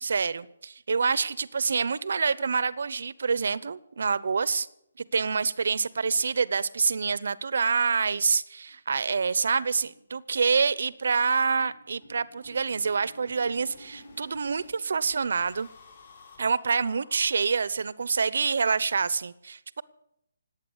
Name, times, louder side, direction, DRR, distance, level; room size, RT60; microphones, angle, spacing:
voice 1, 0.0-4.7 5.1-15.7 16.4-19.8, right 5 dB, 65° right, 18 dB, 0.8 m, -27 dB
sound 1, 8.3-8.4 8.7-8.8 9.1-9.2 9.5-14.7 15.1-17.9, left 1 dB, 50° left, 7.6 m, -52 dB
18.5 x 9.0 x 8.1 m, 0.77 s
hypercardioid pair, 165°, 0 cm